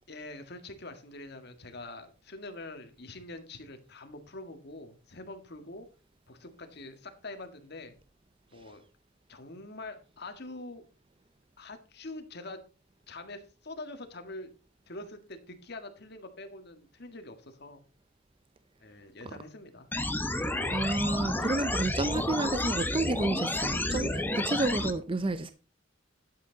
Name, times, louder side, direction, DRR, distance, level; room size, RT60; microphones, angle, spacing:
voice 1, 0.1-5.9 6.3-8.0 8.5-8.9 9.3-10.9 11.6-12.7 13.1-14.5 14.9-17.8 18.8-19.9, left 2 dB, 60° left, 1.9 m, -44 dB
sound 1, 19.9-24.9, left 1 dB, 10° left, 1.0 m, -31 dB
voice 2, 20.3-25.5, right 2 dB, 30° right, 0.6 m, -30 dB
12.0 x 8.0 x 4.0 m
head